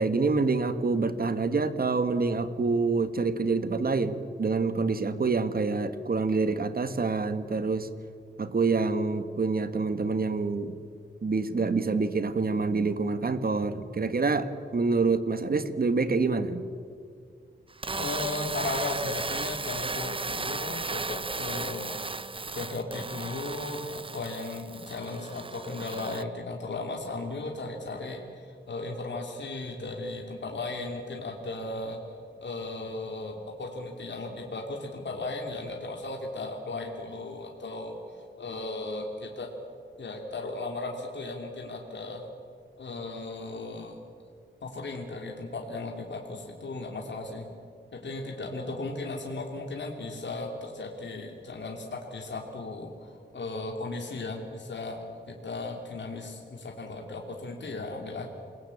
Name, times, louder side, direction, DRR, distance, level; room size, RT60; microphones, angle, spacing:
voice 1, 0.0-7.9 8.4-10.8 11.2-16.6, right 4 dB, 50° right, 10 dB, 1.7 m, -27 dB
sound 1, 17.7-26.2, right 3 dB, 25° right, 0.7 m, -35 dB
voice 2, 18.0-22.0 22.6-39.5 40.0-42.3 42.8-44.0 44.6-47.5 47.9-55.0 55.3-58.3, left 2 dB, 70° left, 1 dB, 3.2 m, -36 dB
28.5 x 20.5 x 8.7 m, 2.2 s
wide cardioid pair, 90°, 19 cm